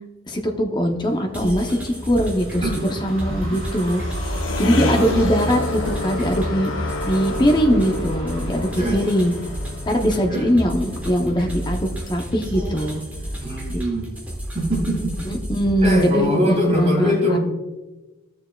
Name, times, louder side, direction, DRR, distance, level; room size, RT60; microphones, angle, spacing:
voice 1, 0.3-2.6 3.0-4.0 4.6-6.7 7.0-9.3 9.9-13.0 15.5-17.4, equal, 20° left, 3 dB, 0.7 m, -21 dB
sound 1, 1.0-9.3, right 2 dB, 75° right, 2.5 m, -43 dB
sound 2, 1.3-16.1, equal, 10° right, 1.2 m, -31 dB
sound 3, 1.5-13.0, left 2 dB, 70° left, 0.7 m, -30 dB
voice 2, 4.8-5.2 8.6-9.0 10.3-10.5 13.4-14.1 14.5-15.2 15.8-17.4, equal, 30° right, -2 dB, 2.2 m, -23 dB
13.0 x 6.6 x 2.3 m, 1.1 s
head